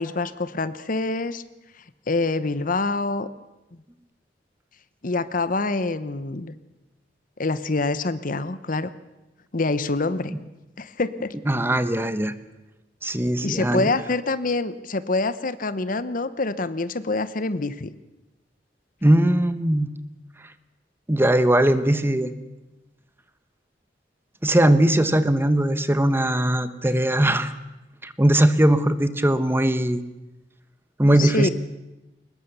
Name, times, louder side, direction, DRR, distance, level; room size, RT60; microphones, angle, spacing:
voice 1, 0.0-1.4 2.1-3.3 5.0-6.6 7.4-8.9 9.5-10.3 10.8-11.3 13.4-17.9 31.2-31.5, left 3 dB, 50° left, 14 dB, 1.0 m, -26 dB
voice 2, 11.5-12.3 13.0-13.9 19.0-19.9 21.1-22.3 24.4-27.6 28.0-30.0 31.0-31.5, right 1 dB, 15° right, 12 dB, 1.1 m, -20 dB
22.5 x 20.5 x 6.9 m, 1.0 s
head